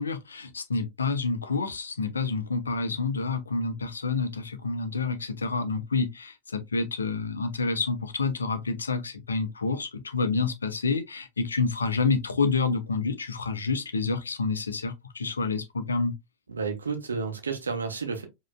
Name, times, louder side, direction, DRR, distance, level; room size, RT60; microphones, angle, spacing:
voice 1, 0.0-16.1, left 4 dB, 75° left, 0.7 m, -28 dB
voice 2, 16.5-18.2, right 5 dB, 75° right, 1.0 m, -31 dB
4.9 x 3.0 x 2.2 m
figure-of-eight pair, 90°, 0 cm